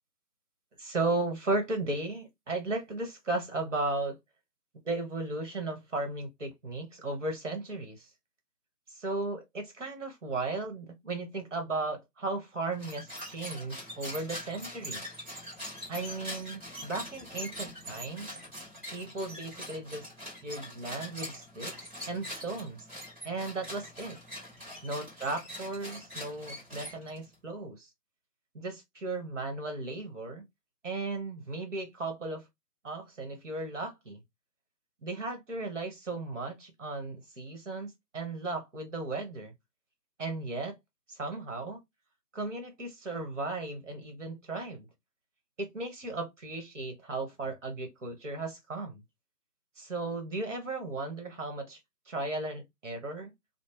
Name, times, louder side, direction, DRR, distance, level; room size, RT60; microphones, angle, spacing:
voice 1, 0.8-4.1 4.8-8.1 9.0-15.0 15.9-18.4 18.9-20.1 20.4-21.7 22.1-22.8 23.2-24.2 24.8-27.9 28.5-30.4 30.8-32.4 32.8-34.2 35.0-39.5 40.2-40.8 41.1-41.8 42.3-44.9 45.6-49.0 49.8-51.8 52.1-53.3, right 2 dB, 50° right, 1.1 m, -35 dB
sound 1, 12.7-27.3, equal, 15° right, 1.3 m, -43 dB
2.6 x 2.0 x 3.2 m
figure-of-eight pair, 155°, 48 cm